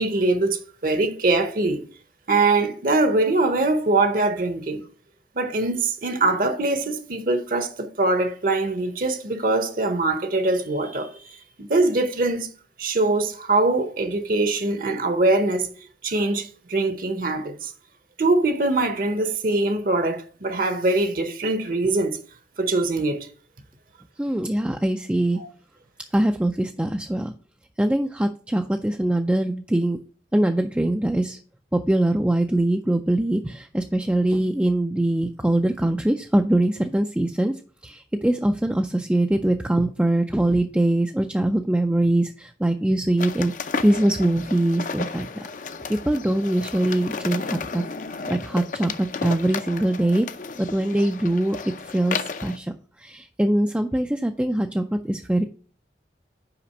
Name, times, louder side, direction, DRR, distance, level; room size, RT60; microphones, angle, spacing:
voice 1, 0.0-1.8 2.3-4.8 5.4-12.5 12.8-15.7 16.0-17.7 18.2-22.2 22.6-23.3 25.4-25.5, right 2 dB, 50° right, 0.8 m, -23 dB
voice 2, 24.2-25.4 26.1-27.3 27.8-30.0 30.3-31.4 31.7-37.5 37.8-45.5 45.9-47.8 48.3-50.3 50.6-52.7 53.0-55.4, right 1 dB, 5° right, 0.3 m, -22 dB
sound 1, 43.2-52.6, left 4 dB, 45° left, 0.5 m, -33 dB
5.9 x 5.0 x 6.4 m
head